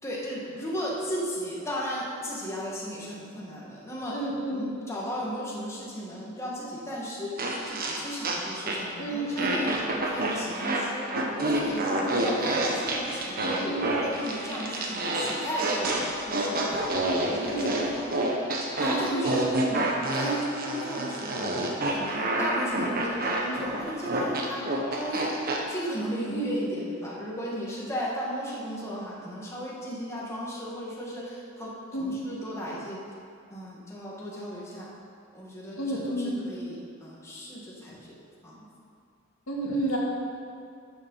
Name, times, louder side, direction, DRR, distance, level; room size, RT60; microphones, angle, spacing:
voice 1, 0.0-4.2 4.5-7.3 7.7-11.0 11.3-18.2 18.8-19.4 19.7-19.9 20.1-21.5 21.9-24.6 24.9-25.3 25.7-31.7 32.0-33.0 33.5-34.9 35.3-38.1 38.4-38.6, equal, 15° left, -6 dB, 1.8 m, -35 dB
voice 2, 4.1-4.7 9.0-9.7 13.7-13.9 17.5-17.7 18.8-19.2 20.2-20.4 26.3-26.6 31.9-32.2 35.8-36.4 39.5-40.0, right 1 dB, 80° left, -3 dB, 2.1 m, -30 dB
sound 1, 7.4-9.0 9.4-25.6, right 1 dB, 45° right, 1.2 m, -28 dB
10.5 x 7.5 x 5.6 m, 2.4 s
head